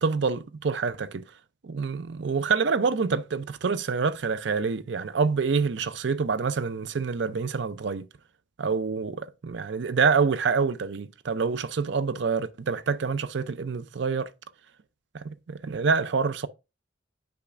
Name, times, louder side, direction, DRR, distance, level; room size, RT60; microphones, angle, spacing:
voice 1, 0.0-1.2 1.6-8.1 8.6-14.3 15.1-16.5, right 5 dB, 65° right, 0.5 m, -27 dB
8.4 x 5.8 x 2.4 m
head